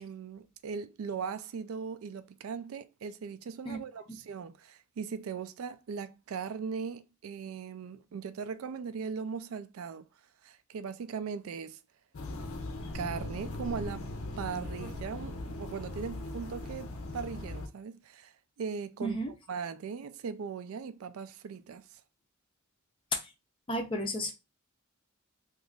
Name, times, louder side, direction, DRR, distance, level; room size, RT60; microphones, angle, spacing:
voice 1, 0.0-10.1 10.4-11.8 12.9-14.1 14.4-19.2 19.5-22.0, right 6 dB, 75° right, 0.4 m, -39 dB
sound 1, 12.1-17.7, left 2 dB, 75° left, 0.6 m, -39 dB
voice 2, 19.0-19.3 23.1-23.3 23.7-24.3, equal, 25° left, 0.5 m, -32 dB
2.9 x 2.5 x 3.4 m
head